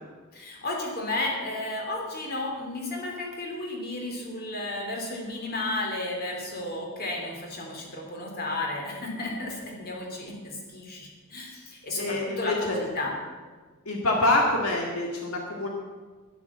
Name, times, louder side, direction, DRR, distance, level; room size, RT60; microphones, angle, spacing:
voice 1, 0.3-13.1, left 2 dB, 45° left, 0 dB, 3.1 m, -33 dB
voice 2, 12.0-12.8 13.9-15.7, left 2 dB, 80° left, 0 dB, 2.0 m, -26 dB
11.0 x 10.5 x 7.4 m, 1.4 s
head